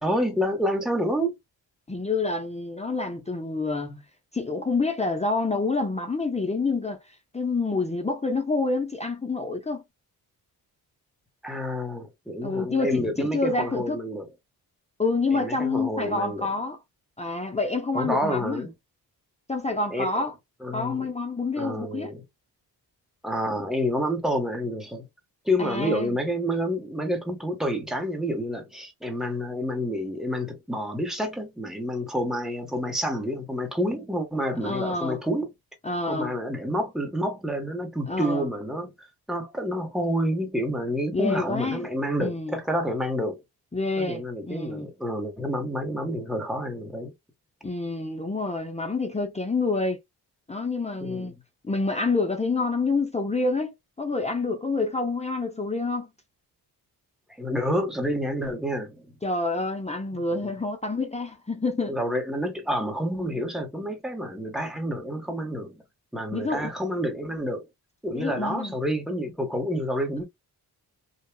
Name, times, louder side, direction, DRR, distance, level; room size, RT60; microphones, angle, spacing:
voice 1, 0.0-1.4 11.4-14.3 15.3-16.5 17.9-18.7 19.9-20.2 20.6-21.1 21.6-22.2 23.2-25.0 25.4-35.5 36.1-38.9 39.3-43.4 44.0-47.1 51.0-51.3 57.4-59.0 60.1-60.5 61.9-65.8 66.1-67.6 68.0-70.2, equal, ahead, 1.2 m, -28 dB
voice 2, 1.9-4.0 4.3-7.0 7.3-9.8 12.4-14.0 15.0-16.8 17.2-18.7 19.5-20.3 20.7-22.1 25.6-26.2 34.6-35.2 35.8-36.3 38.1-38.5 41.1-41.8 42.2-42.6 43.7-44.9 47.6-50.0 50.5-51.3 51.7-53.7 54.0-56.1 59.2-62.0 66.3-66.7 68.1-68.7, left 3 dB, 15° left, 0.7 m, -27 dB
2.8 x 2.3 x 2.2 m
cardioid pair, 60°, 40 cm